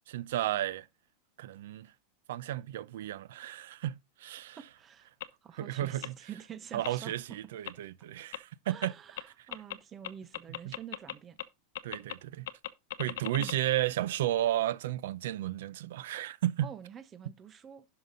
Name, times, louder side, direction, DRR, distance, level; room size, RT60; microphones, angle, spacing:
voice 1, 0.1-0.8 1.4-1.9 2.3-4.6 5.6-6.1 6.7-8.9 10.7-10.8 11.8-12.5 13.0-16.6, right 13 dB, 65° right, 0.7 m, -33 dB
voice 2, 4.6-5.1 5.4-7.4 8.7-11.4 13.4-13.7 16.6-17.9, right 9 dB, 15° right, 0.7 m, -47 dB
sound 1, 5.2-5.3 6.0-6.1 6.8-6.9 7.7-7.8 8.3-8.4 8.8-8.9 9.2-9.3 9.5-9.8 10.0-11.1 11.4-11.5 11.8-12.1 12.5-13.6, left 13 dB, 70° left, 0.9 m, -37 dB
11.0 x 5.9 x 3.8 m
supercardioid pair, 180°, 0 cm